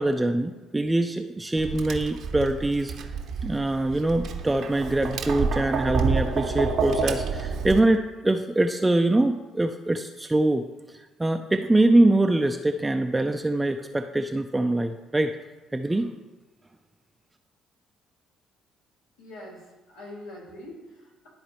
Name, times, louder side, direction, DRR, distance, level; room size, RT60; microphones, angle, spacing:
voice 1, 0.0-2.9 3.4-10.7 11.2-15.4 15.7-16.1, right 2 dB, 15° right, 6 dB, 0.5 m, -23 dB
Tap, 1.6-7.8, right 5 dB, 55° right, 0.8 m, -29 dB
voice 2, 19.2-21.3, left 1 dB, 80° left, -6 dB, 2.6 m, -43 dB
12.0 x 4.3 x 3.1 m, 1.2 s
hypercardioid pair, 50°, 0 cm